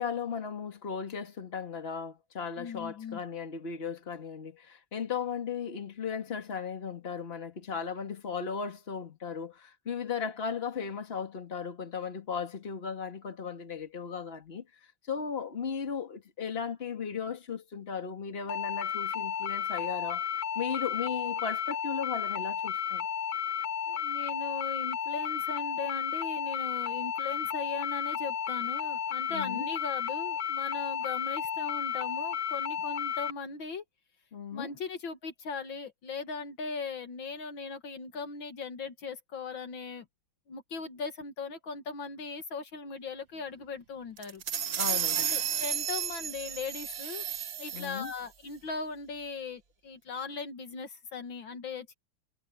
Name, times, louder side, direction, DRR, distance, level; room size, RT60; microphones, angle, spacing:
voice 1, 0.0-14.6 15.1-20.2 20.6-23.1 29.3-29.6 34.3-34.7 44.8-45.3 47.7-48.1, left 6 dB, 30° left, 2.2 m, -36 dB
voice 2, 2.6-3.2 23.9-33.8 34.5-40.1 40.5-44.4 45.2-47.2 47.6-51.9, left 4 dB, 65° left, 2.3 m, -39 dB
sound 1, 18.5-33.3, left 8 dB, 85° left, 2.0 m, -33 dB
sound 2, 44.2-48.2, right 9 dB, 65° right, 0.6 m, -32 dB
omnidirectional pair, 2.3 m